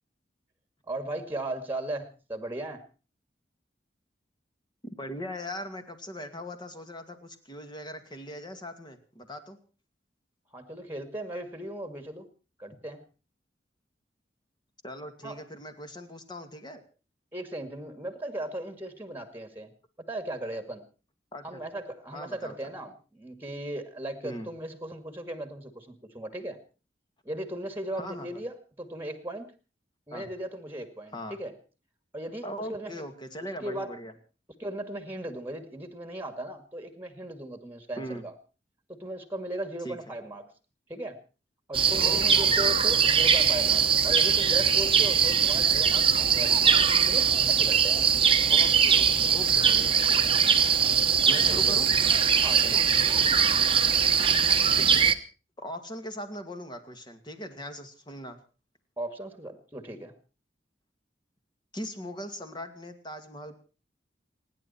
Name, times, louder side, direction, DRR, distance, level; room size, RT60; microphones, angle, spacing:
voice 1, 0.9-2.8 10.5-12.3 12.6-13.0 15.2-15.4 17.3-19.7 20.0-20.8 21.4-26.6 27.2-29.5 30.1-31.5 32.1-33.0 33.6-33.9 34.6-38.3 38.9-40.5 40.9-41.2 41.7-48.0 51.0-51.8 52.4-53.3 59.0-60.1, right 1 dB, 10° right, 9 dB, 2.2 m, -37 dB
voice 2, 4.8-9.6 14.8-16.8 21.3-21.6 22.1-22.6 24.2-24.5 27.9-28.3 30.1-30.3 31.1-31.4 32.4-34.1 38.0-38.2 39.8-40.0 42.0-42.8 48.5-50.3 51.3-51.9 54.7-55.0 55.6-58.4 61.7-63.5, equal, 25° left, 7 dB, 2.3 m, -40 dB
sound 1, 41.7-55.1, right 7 dB, 30° right, 1.1 m, -22 dB
29.5 x 10.5 x 4.3 m, 0.35 s
head